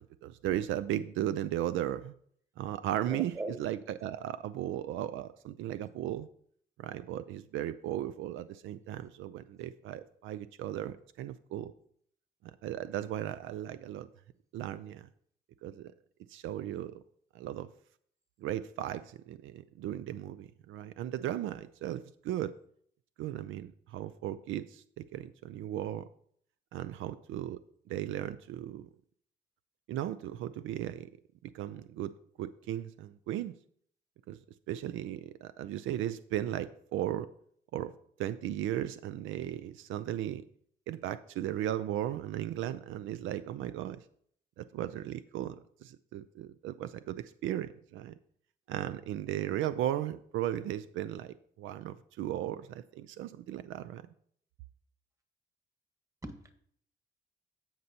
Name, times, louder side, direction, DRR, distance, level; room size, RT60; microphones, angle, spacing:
voice 1, 0.0-2.1 2.6-3.3 3.6-6.3 6.8-11.7 12.6-14.1 14.5-15.1 15.6-15.9 16.3-17.0 17.3-17.7 18.4-22.5 23.2-26.1 26.7-27.6 27.9-28.9 29.9-31.1 31.5-32.1 32.4-33.5 34.3-34.4 34.7-37.3 37.7-37.9 38.2-40.4 40.9-44.0 44.6-48.1 48.7-54.0, right 12 dB, 85° right, 14 dB, 0.4 m, -36 dB
voice 2, 3.1-3.5 56.2-56.5, right 2 dB, 15° right, 7 dB, 1.3 m, -39 dB
16.0 x 5.4 x 2.8 m, 0.64 s
cardioid pair, 90°, 20 cm